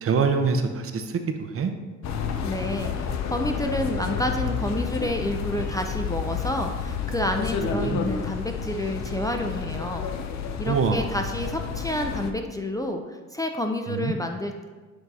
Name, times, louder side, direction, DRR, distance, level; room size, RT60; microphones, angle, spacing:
voice 1, 0.0-1.0 1.4-1.7 7.7-8.1 10.7-11.1 13.9-14.1, right 5 dB, 50° right, 7 dB, 0.6 m, -24 dB
sound 1, 2.0-12.3, left 6 dB, 65° left, 0.6 m, -30 dB
voice 2, 2.4-10.1 10.6-14.7, left 1 dB, 10° left, 4 dB, 0.4 m, -29 dB
7.8 x 2.7 x 4.7 m, 1.3 s
cardioid pair, 90°, 30 cm